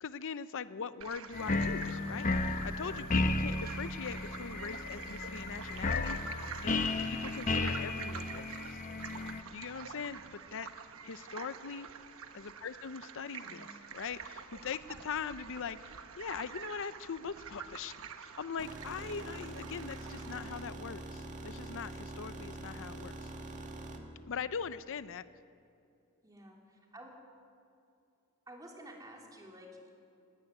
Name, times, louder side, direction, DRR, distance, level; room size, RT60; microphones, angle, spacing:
voice 1, 0.0-2.3 2.6-6.3 6.6-8.8 9.5-10.2 10.5-10.7 11.0-11.9 12.3-17.9 18.2-23.3 24.3-25.3, left 6 dB, 60° left, 14 dB, 0.6 m, -41 dB
sound 1, 1.0-20.6, right 6 dB, 65° right, 1.2 m, -47 dB
sound 2, 1.3-9.4, left 2 dB, 35° left, 1.0 m, -34 dB
voice 2, 13.4-13.8 18.8-18.9 26.2-27.2 28.5-30.1, right 1 dB, 15° right, 0 dB, 3.4 m, -52 dB
sound 3, 18.6-24.0, right 2 dB, 35° right, 2.1 m, -44 dB
19.5 x 17.5 x 9.6 m, 2.6 s
head